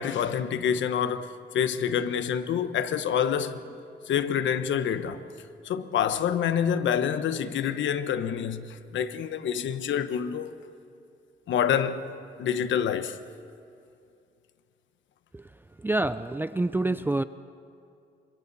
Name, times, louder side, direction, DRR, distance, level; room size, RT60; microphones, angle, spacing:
voice 1, 0.0-3.7 4.1-5.2 5.6-10.5 11.5-12.1 12.4-13.2, left 8 dB, 70° left, 1.2 m, -27 dB
voice 2, 15.8-17.2, right 2 dB, 10° right, 0.5 m, -26 dB
29.0 x 26.0 x 4.2 m
cardioid pair, 90°, 20 cm